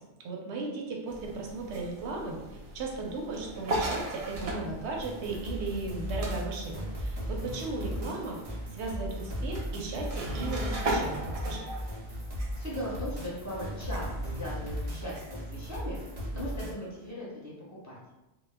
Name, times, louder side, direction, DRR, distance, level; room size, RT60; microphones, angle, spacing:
voice 1, 0.2-2.4 2.7-11.7, right 3 dB, 85° right, 0 dB, 0.9 m, -36 dB
sound 1, 1.1-17.1, right 1 dB, 70° right, 0.3 m, -39 dB
sound 2, 5.0-16.7, equal, 45° right, 0.7 m, -36 dB
voice 2, 12.6-18.0, equal, 20° left, -7 dB, 0.7 m, -39 dB
2.2 x 2.0 x 3.2 m, 1.0 s
omnidirectional pair, 1.1 m